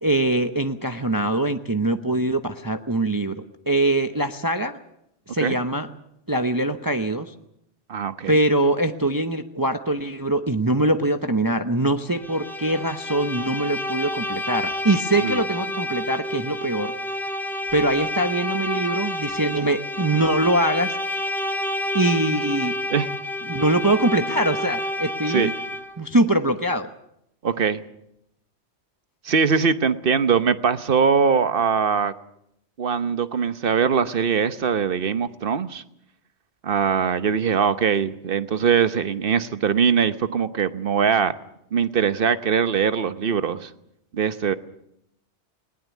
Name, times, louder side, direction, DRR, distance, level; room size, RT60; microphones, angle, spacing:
voice 1, 0.0-4.8 5.3-5.9 6.3-7.3 8.3-16.9 17.7-21.0 21.9-22.7 23.5-25.5 26.0-26.9, right 1 dB, 20° right, 8 dB, 0.8 m, -23 dB
voice 2, 7.9-8.4 15.2-15.4 22.9-23.1 23.6-23.7 25.3-25.5 27.4-27.8 29.2-32.1 32.8-35.8 36.6-41.3 41.7-43.7 44.1-44.5, right 6 dB, 55° right, 12 dB, 1.1 m, -22 dB
Bowed string instrument, 12.1-26.0, left 1 dB, ahead, 2.0 m, -29 dB
20.5 x 19.0 x 8.3 m, 0.78 s
omnidirectional pair, 1.2 m